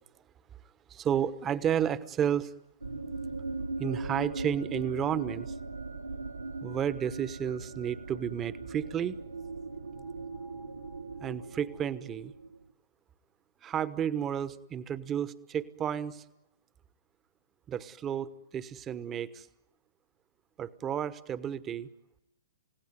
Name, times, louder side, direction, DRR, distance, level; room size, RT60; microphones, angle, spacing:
voice 1, 0.9-2.5 3.8-5.6 6.6-9.2 11.2-12.3 13.6-16.2 17.7-19.5 20.6-21.9, right 9 dB, 20° right, 15 dB, 1.1 m, -32 dB
sound 1, 2.8-12.6, right 3 dB, 85° right, 2.7 m, -39 dB
29.5 x 17.5 x 9.6 m, 0.91 s
figure-of-eight pair, 115°, 0 cm